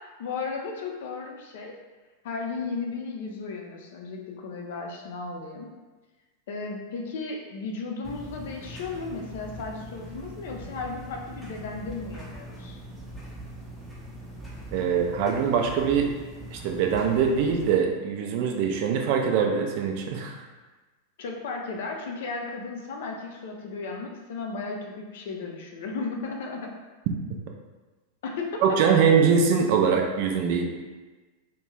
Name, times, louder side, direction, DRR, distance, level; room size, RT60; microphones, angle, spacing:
voice 1, 0.0-1.8 2.2-5.7 6.5-12.8 21.2-26.7 28.2-29.0, left 4 dB, 55° left, 1 dB, 0.4 m, -35 dB
sound 1, 8.0-17.8, right 1 dB, ahead, 0.6 m, -42 dB
voice 2, 14.7-16.1 16.5-20.4 28.6-30.6, right 6 dB, 45° right, 2 dB, 0.3 m, -23 dB
2.5 x 2.1 x 3.0 m, 1.2 s
figure-of-eight pair, 90°, 0 cm